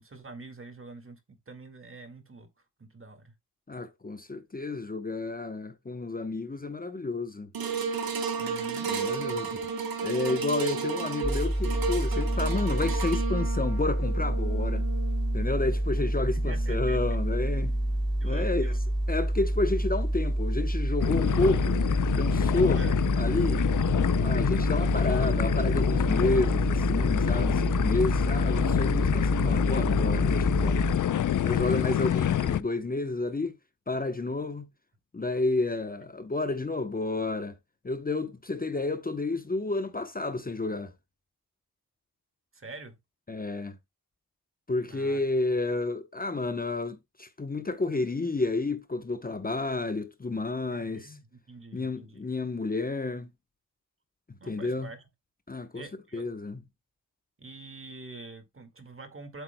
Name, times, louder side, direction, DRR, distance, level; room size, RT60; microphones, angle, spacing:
voice 1, 0.0-2.5 2.8-3.3 8.4-8.9 16.3-17.0 18.2-18.8 22.8-22.9 42.5-43.0 44.8-45.2 50.7-52.3 54.4-55.1 55.7-56.3 57.4-59.4, right 3 dB, 35° right, 2.0 m, -46 dB
voice 2, 3.7-7.5 8.8-9.6 10.0-14.9 15.3-17.7 18.2-18.7 19.1-21.8 22.1-22.9 23.2-23.6 24.2-31.0 31.4-33.5 33.9-34.7 35.1-37.6 37.8-40.9 43.3-43.8 44.7-51.2 51.7-53.3 54.3-54.9 55.5-55.8 56.1-56.6, left 2 dB, 25° left, 0.9 m, -30 dB
sound 1, 7.5-17.9 18.5-18.6, right 5 dB, 80° right, 1.5 m, -34 dB
sound 2, 11.2-30.9, right 1 dB, ahead, 1.6 m, -28 dB
sound 3, 21.0-32.6, left 10 dB, 60° left, 0.6 m, -27 dB
8.2 x 7.8 x 2.2 m
cardioid pair, 65°, 35 cm